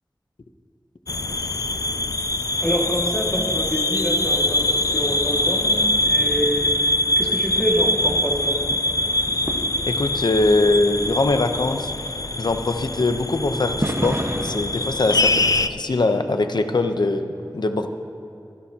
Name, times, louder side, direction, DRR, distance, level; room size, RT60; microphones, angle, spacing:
sound 1, 1.1-15.7, left 2 dB, 50° left, 0.4 m, -23 dB
voice 1, 2.6-5.8 6.1-6.7 7.2-8.6 15.0-15.2, equal, 15° left, -3 dB, 2.0 m, -26 dB
sound 2, 8.7-8.8 9.2-10.1 10.4-10.5 10.8-10.9 11.9-12.0 12.8-13.4 13.8-15.3 15.7-16.2 16.5-16.6, right 1 dB, 35° right, 1.2 m, -30 dB
voice 2, 9.9-11.9 12.4-17.9, left 2 dB, 70° left, 7 dB, 0.7 m, -22 dB
25.0 x 11.5 x 2.9 m, 2.8 s
wide cardioid pair, 65°, 8 cm